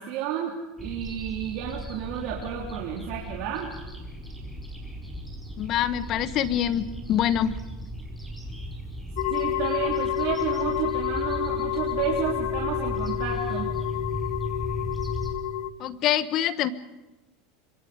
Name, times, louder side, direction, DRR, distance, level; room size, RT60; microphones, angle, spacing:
voice 1, 0.0-3.7 9.3-13.7, right 9 dB, 60° right, -2 dB, 3.4 m, -31 dB
sound 1, 0.8-15.3, left 1 dB, ahead, 5.2 m, -36 dB
voice 2, 5.6-7.6 15.8-16.7, left 10 dB, 45° left, 13 dB, 1.3 m, -25 dB
sound 2, 9.2-15.7, left 10 dB, 70° left, 1.6 m, -29 dB
25.0 x 24.5 x 5.1 m, 1.1 s
supercardioid pair, 120°, 0 cm